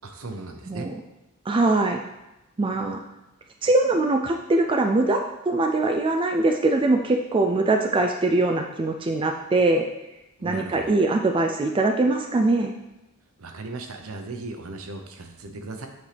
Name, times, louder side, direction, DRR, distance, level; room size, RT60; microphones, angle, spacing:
voice 1, 0.0-0.9 10.4-10.9 13.4-15.9, right 3 dB, 70° right, 5 dB, 0.8 m, -37 dB
voice 2, 1.5-2.0 2.6-3.0 3.6-9.9 10.4-12.7, right 2 dB, 25° right, 3 dB, 0.3 m, -22 dB
8.2 x 4.5 x 3.4 m, 0.97 s
head